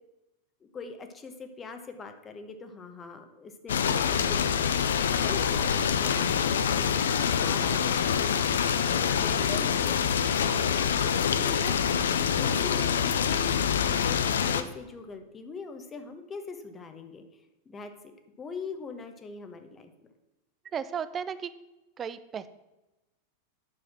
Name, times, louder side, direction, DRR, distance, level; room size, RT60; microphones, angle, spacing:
voice 1, 0.7-8.8 9.2-9.9 10.3-11.8 12.2-17.3 17.6-18.1 18.4-19.9, left 4 dB, 20° left, 7 dB, 1.2 m, -42 dB
sound 1, 3.7-14.6, left 7 dB, 65° left, 0.6 m, -26 dB
voice 2, 20.7-21.5 22.0-22.5, right 7 dB, 25° right, 14 dB, 0.6 m, -34 dB
9.7 x 7.0 x 6.0 m, 1.0 s
figure-of-eight pair, 90°, 0 cm